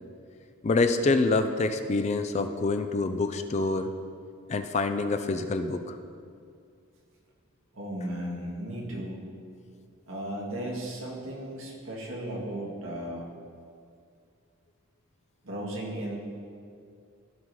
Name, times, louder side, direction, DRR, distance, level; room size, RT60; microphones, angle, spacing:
voice 1, 0.6-3.9 4.5-6.0, left 3 dB, 30° left, 8 dB, 0.3 m, -26 dB
voice 2, 7.7-9.2 10.1-13.2 15.4-16.2, right 1 dB, 75° right, -3 dB, 1.8 m, -35 dB
15.5 x 5.3 x 3.2 m, 2.3 s
head